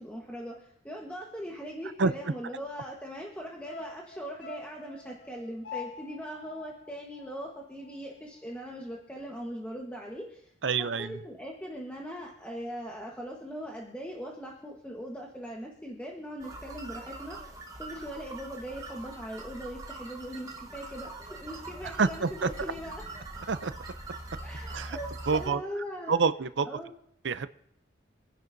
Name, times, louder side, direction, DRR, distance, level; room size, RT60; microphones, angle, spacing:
voice 1, 0.0-10.5 10.8-17.4 17.8-23.0 24.4-26.2 26.7-26.9, equal, 5° left, -2 dB, 1.2 m, -40 dB
sound 1, 3.7-8.1 8.3-8.4, left 4 dB, 80° left, 1.3 m, -45 dB
voice 2, 10.6-11.2 21.8-22.5 23.5-23.7 24.7-25.0 25.3-25.6 26.1-26.7 27.2-27.5, right 4 dB, 75° right, 13 dB, 0.6 m, -27 dB
sound 2, 16.4-25.5, right 2 dB, 20° right, 1.2 m, -43 dB
25.0 x 10.5 x 2.7 m, 0.71 s
head